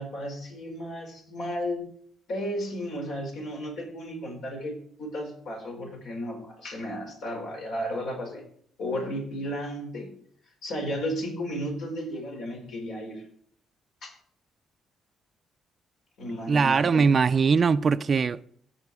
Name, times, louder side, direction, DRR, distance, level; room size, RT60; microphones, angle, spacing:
voice 1, 0.0-1.8 2.3-8.4 8.8-10.1 10.6-13.2 14.0-14.1 16.2-17.1, equal, 75° left, 4.6 m, -34 dB
voice 2, 16.5-18.4, right 5 dB, 45° right, 0.4 m, -21 dB
16.0 x 5.6 x 4.8 m
cardioid pair, 90°, 0 cm